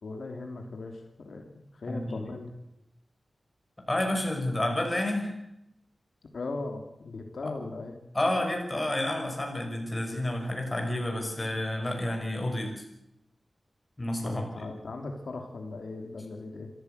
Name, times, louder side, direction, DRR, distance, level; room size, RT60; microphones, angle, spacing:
voice 1, 0.0-2.5 6.3-8.0 14.2-16.7, left 3 dB, 70° left, 4 dB, 3.1 m, -38 dB
voice 2, 1.9-2.3 3.9-5.3 7.4-7.5 8.1-12.8 14.0-14.4, left 1 dB, 20° left, 2 dB, 5.9 m, -30 dB
25.5 x 15.0 x 8.1 m, 0.84 s
wide cardioid pair, 120°, 0 cm